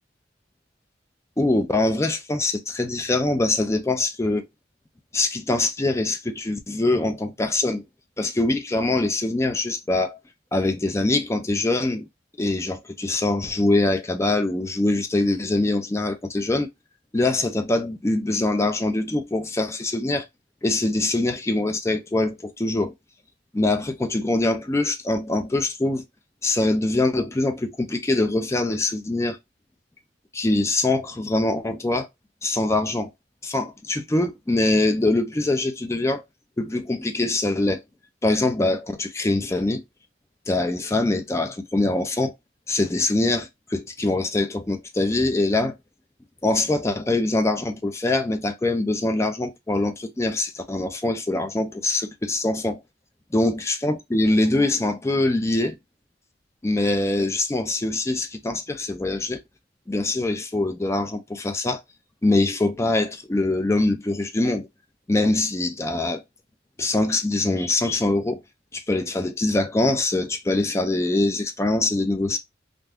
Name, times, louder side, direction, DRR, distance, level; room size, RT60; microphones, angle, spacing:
voice 1, 1.4-4.5 5.1-7.8 8.2-10.2 10.5-12.1 12.4-16.7 17.1-20.3 20.6-22.9 23.5-26.0 26.4-29.4 30.3-32.1 32.4-33.1 33.4-36.2 36.6-37.8 38.2-39.8 40.5-42.3 42.7-45.8 46.4-52.8 53.3-55.8 56.6-59.4 59.9-61.8 62.2-64.7 65.1-66.2 66.8-68.4 68.7-72.4, left 2 dB, 15° left, 0.4 m, -23 dB
2.5 x 2.3 x 3.4 m
head